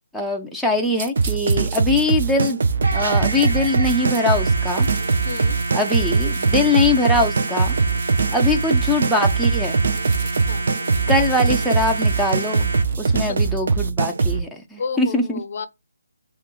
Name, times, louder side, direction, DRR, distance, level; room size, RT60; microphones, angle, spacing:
voice 1, 0.1-2.6 2.9-4.9 5.7-7.7 8.3-9.9 11.1-12.7 13.0-15.4, left 2 dB, ahead, 0.5 m, -22 dB
sound 1, 0.9-4.2 4.6-13.3, right 5 dB, 35° right, 1.0 m, -41 dB
sound 2, 1.2-14.4, right 4 dB, 55° right, 0.6 m, -21 dB
sound 3, 2.8-12.8, right 2 dB, 85° right, 1.3 m, -29 dB
voice 2, 5.2-5.6 10.5-10.7 13.1-13.4 14.8-15.7, left 5 dB, 45° left, 0.6 m, -31 dB
5.8 x 2.5 x 3.1 m
hypercardioid pair, 160°, 0 cm